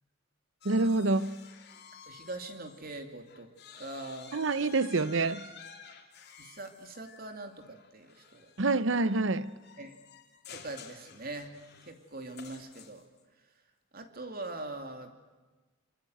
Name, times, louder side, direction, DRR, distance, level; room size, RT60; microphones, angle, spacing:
sound 1, 0.6-3.0 3.3-13.2, left 6 dB, 55° left, 3.2 m, -52 dB
voice 1, 0.6-1.5 4.3-5.5 8.6-9.6, right 3 dB, 65° right, 0.9 m, -27 dB
voice 2, 2.0-3.5 3.8-4.3 6.4-8.5 9.8-9.9 10.5-11.5 11.8-13.1 13.9-15.1, right 2 dB, 45° right, 2.7 m, -42 dB
25.0 x 24.5 x 7.9 m
head